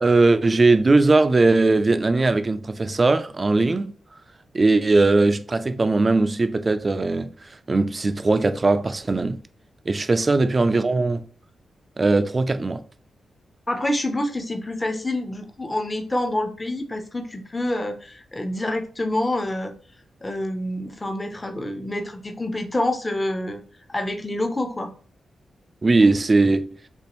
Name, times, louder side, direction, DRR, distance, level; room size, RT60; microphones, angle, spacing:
voice 1, 0.0-3.9 4.5-9.4 9.9-11.2 12.0-12.8 25.8-26.7, right 3 dB, 25° right, 0.4 m, -19 dB
voice 2, 13.7-19.7 20.2-23.6 23.9-24.9, left 1 dB, 20° left, 0.7 m, -27 dB
6.7 x 2.5 x 3.0 m
wide cardioid pair, 130°, 0 cm